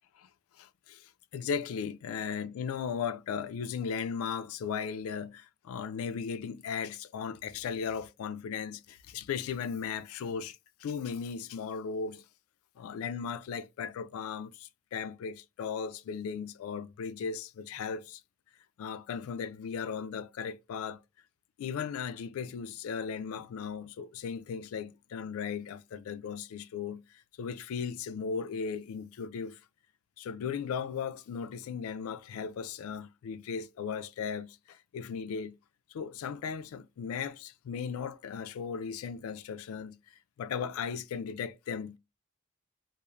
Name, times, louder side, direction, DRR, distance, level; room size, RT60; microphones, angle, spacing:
voice 1, 0.6-12.2 12.8-18.2 18.8-21.0 21.6-27.0 27.4-29.6 30.2-35.6 35.9-42.0, left 6 dB, 75° left, 0.3 m, -37 dB
3.0 x 2.0 x 2.3 m
head